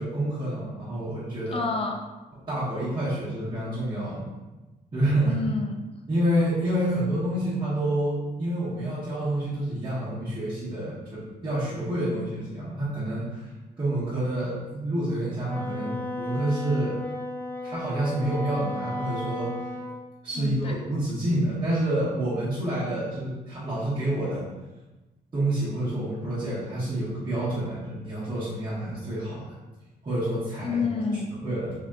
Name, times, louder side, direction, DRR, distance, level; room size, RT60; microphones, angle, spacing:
voice 1, 0.0-1.6 2.5-4.3 4.9-5.4 6.1-13.5 13.8-17.0 17.6-19.5 20.2-24.4 25.3-29.4 30.0-30.8 31.4-31.7, right 1 dB, 30° right, -12 dB, 1.0 m, -28 dB
voice 2, 1.5-2.0 5.3-5.8 20.3-20.8 30.6-31.3, left 4 dB, 35° left, 2 dB, 0.4 m, -29 dB
Wind instrument woodwind instrument, 15.4-20.0, left 1 dB, 10° left, 0.8 m, -34 dB
3.7 x 2.5 x 2.2 m, 1.1 s
cardioid pair, 100°, 18 cm